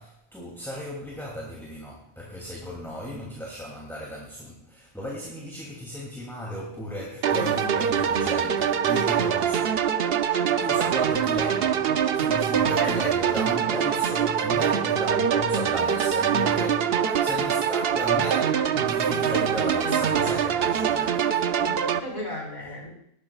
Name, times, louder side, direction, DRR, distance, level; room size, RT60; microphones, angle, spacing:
voice 1, 0.0-10.1 10.6-21.5, equal, ahead, -4 dB, 2.7 m, -35 dB
sound 1, 7.2-22.0, right 8 dB, 60° right, 0.8 m, -24 dB
voice 2, 12.6-14.8 19.1-20.0 21.6-22.9, left 1 dB, 40° left, -1 dB, 4.9 m, -38 dB
20.0 x 12.0 x 2.4 m, 0.72 s
omnidirectional pair, 1.2 m